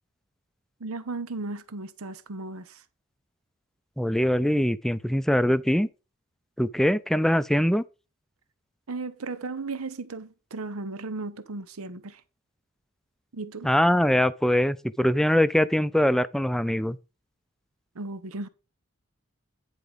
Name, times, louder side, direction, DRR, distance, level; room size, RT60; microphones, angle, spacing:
voice 1, 0.8-2.8 8.9-12.2 13.3-13.7 17.9-18.5, right 3 dB, 85° right, 0.8 m, -35 dB
voice 2, 4.0-5.9 6.6-7.8 13.6-17.0, equal, ahead, 0.4 m, -22 dB
9.9 x 4.6 x 5.2 m
head